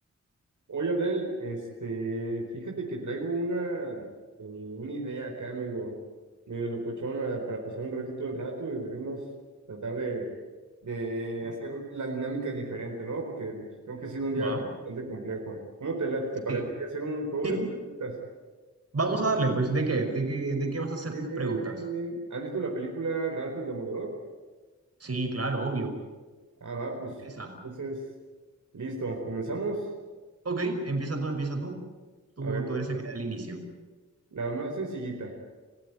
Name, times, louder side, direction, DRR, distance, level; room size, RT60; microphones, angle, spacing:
voice 1, 0.7-4.1 4.4-6.0 6.5-9.2 9.7-10.3 10.8-14.6 14.9-17.6 18.0-18.2 21.1-24.1 26.6-27.1 27.6-28.0 28.7-29.8 32.4-32.7 34.3-35.3, right 2 dB, 80° right, 0 dB, 4.5 m, -33 dB
voice 2, 18.9-21.7 25.0-25.9 27.4-27.5 30.4-31.8 32.4-33.6, right 3 dB, 55° right, 3 dB, 5.5 m, -29 dB
29.5 x 15.5 x 9.8 m, 1.3 s
wide cardioid pair, 75°, 30 cm